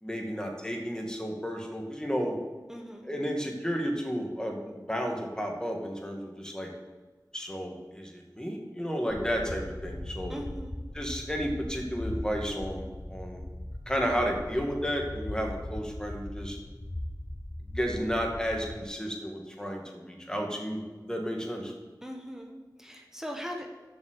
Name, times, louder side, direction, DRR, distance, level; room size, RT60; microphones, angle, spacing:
voice 1, 0.0-2.4 3.0-6.7 7.3-10.3 10.9-13.4 13.9-16.6 17.7-21.7, equal, 10° left, 1 dB, 2.1 m, -32 dB
voice 2, 2.7-3.1 10.3-10.8 22.0-23.7, equal, 5° right, 2 dB, 1.4 m, -40 dB
sound 1, 9.1-18.9, left 1 dB, 25° left, 0.8 m, -39 dB
7.4 x 6.1 x 6.9 m, 1.3 s
wide cardioid pair, 45°, 7 cm